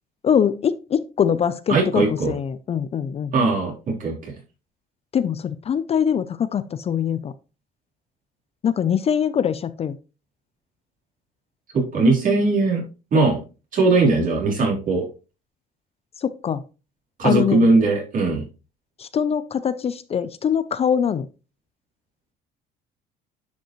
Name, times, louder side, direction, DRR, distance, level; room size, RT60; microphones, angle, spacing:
voice 1, 0.2-3.3 5.1-7.3 8.6-10.0 16.2-16.6 17.2-17.7 19.0-21.3, left 8 dB, 35° left, 14 dB, 0.5 m, -23 dB
voice 2, 1.7-2.3 3.3-4.1 11.7-12.8 13.1-13.4 13.7-15.0 17.2-18.4, right 3 dB, 55° right, -3 dB, 3.7 m, -19 dB
10.5 x 5.2 x 3.1 m, 0.32 s
cardioid pair, 110°, 17 cm